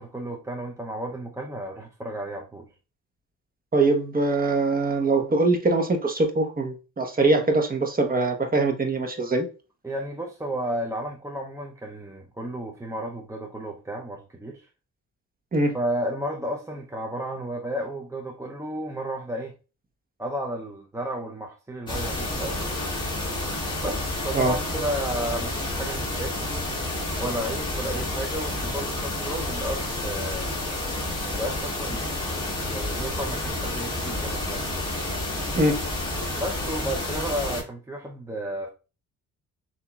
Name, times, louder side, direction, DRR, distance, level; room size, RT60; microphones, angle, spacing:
voice 1, 0.0-2.7 9.8-14.7 15.7-19.5 20.2-22.9 23.8-26.7 27.2-30.5 31.3-32.2 32.5-34.8 36.3-38.7, right 1 dB, 10° right, 0.6 m, -33 dB
voice 2, 3.7-9.5 15.5-15.7 24.3-24.6 35.6-35.8, right 2 dB, 30° right, 1.1 m, -22 dB
sound 1, 21.9-37.6, left 2 dB, 15° left, 2.1 m, -30 dB
6.9 x 2.8 x 2.3 m
cardioid pair, 90°, 30 cm